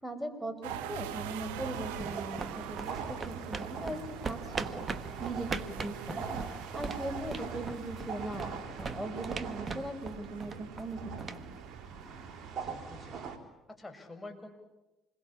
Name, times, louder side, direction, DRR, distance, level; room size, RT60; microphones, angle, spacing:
voice 1, 0.0-4.9 5.2-6.4 6.7-11.5, right 1 dB, 5° right, 9 dB, 5.1 m, -40 dB
sound 1, 0.6-12.5, right 12 dB, 90° right, 0.8 m, -47 dB
sound 2, 0.7-13.4, right 5 dB, 55° right, 3.7 m, -42 dB
sound 3, 1.9-12.3, right 4 dB, 35° right, 1.5 m, -42 dB
voice 2, 12.6-13.3 13.7-14.5, left 2 dB, 15° left, 4 dB, 5.9 m, -48 dB
27.0 x 22.0 x 8.7 m, 1.0 s
supercardioid pair, 75°, 0 cm